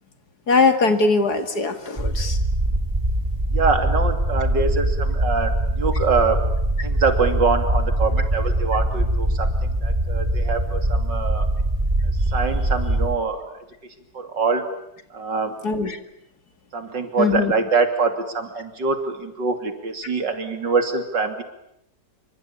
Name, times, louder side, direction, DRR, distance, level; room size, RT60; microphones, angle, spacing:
voice 1, 0.5-2.4 15.6-16.0 17.2-17.5, left 4 dB, 60° left, 8 dB, 2.8 m, -20 dB
sound 1, 2.0-13.2, right 1 dB, 20° right, 2.7 m, -22 dB
voice 2, 3.5-6.4 6.8-11.5 12.3-13.6 14.1-14.7 15.1-15.5 16.7-21.4, right 4 dB, 85° right, 7 dB, 3.5 m, -24 dB
26.5 x 25.0 x 8.7 m, 0.76 s
omnidirectional pair, 1.9 m